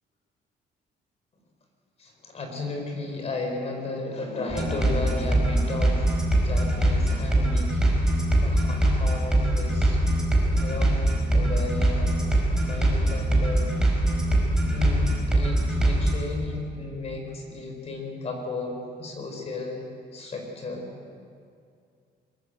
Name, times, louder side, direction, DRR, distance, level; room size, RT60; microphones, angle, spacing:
voice 1, 2.0-10.0 10.5-13.7 14.6-19.8 20.1-20.9, left 3 dB, 40° left, 3 dB, 4.6 m, -34 dB
sound 1, 4.5-16.1, right 1 dB, 5° right, 4.8 m, -23 dB
22.5 x 22.5 x 8.0 m, 2.4 s
cardioid pair, 170°, 17 cm